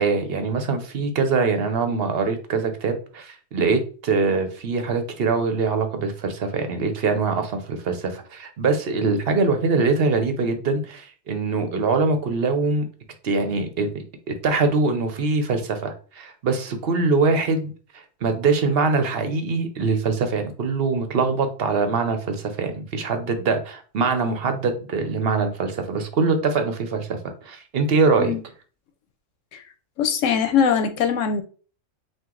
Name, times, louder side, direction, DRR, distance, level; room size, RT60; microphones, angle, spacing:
voice 1, 0.0-12.8 13.2-13.9 14.3-27.2 27.4-28.3, right 4 dB, 55° right, 0.9 m, -23 dB
voice 2, 30.0-31.4, left 7 dB, 80° left, 1.0 m, -21 dB
4.5 x 2.5 x 3.8 m
omnidirectional pair, 1.3 m